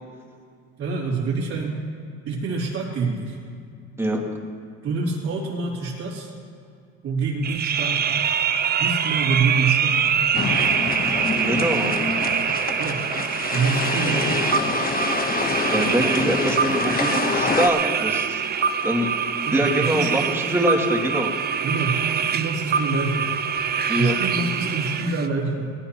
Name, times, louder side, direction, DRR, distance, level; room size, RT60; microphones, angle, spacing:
voice 1, 0.8-1.8 2.3-3.4 4.8-6.3 7.0-8.2 8.8-10.2 12.8-13.1 13.5-14.4 19.4-20.1 21.6-22.0 22.3-23.3 23.9-25.7, right 4 dB, 55° right, -7 dB, 3.0 m, -26 dB
sound 1, 7.4-25.3, right 7 dB, 30° right, 0.7 m, -24 dB
sound 2, 10.3-17.7, left 4 dB, 25° left, 1.1 m, -26 dB
voice 2, 11.3-12.0 15.7-18.4 18.8-19.1 19.5-21.3 23.9-24.1, right 1 dB, 10° right, 0 dB, 2.5 m, -24 dB
18.5 x 16.0 x 3.0 m, 2.4 s
supercardioid pair, 95°, 32 cm